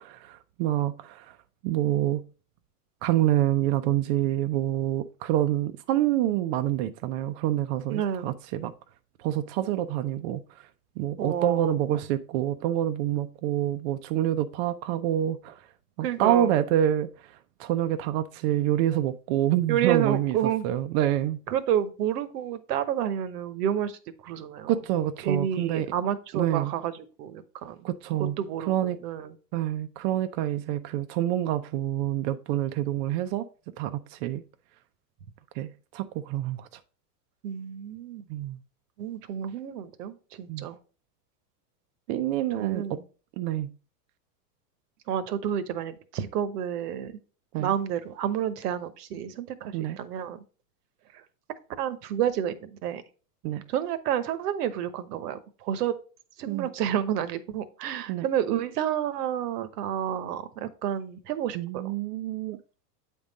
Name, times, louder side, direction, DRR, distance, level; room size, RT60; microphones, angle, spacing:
voice 1, 0.0-1.3 1.6-2.2 3.0-8.7 9.2-10.4 11.0-15.6 16.0-17.1 17.6-20.4 20.6-21.4 24.7-25.9 26.3-26.7 27.8-28.4 28.7-29.0 29.5-33.4 33.8-34.4 35.6-36.7 38.3-38.6 40.5-40.7 42.1-43.0 43.4-43.7 47.5-47.7 49.7-50.0 53.4-53.6 56.5-56.7 58.1-58.3 61.5-62.6, right 12 dB, 40° right, 0.5 m, -27 dB
voice 2, 7.9-8.3 11.2-11.7 16.0-16.5 19.7-20.6 21.5-24.0 24.2-24.8 25.2-27.9 28.4-29.3 37.4-38.2 39.0-40.8 42.6-43.0 45.1-47.1 47.6-50.4 51.8-53.0 53.7-55.9 56.4-61.9, right 9 dB, 70° right, 1.0 m, -30 dB
8.5 x 3.7 x 3.9 m
supercardioid pair, 130°, 49 cm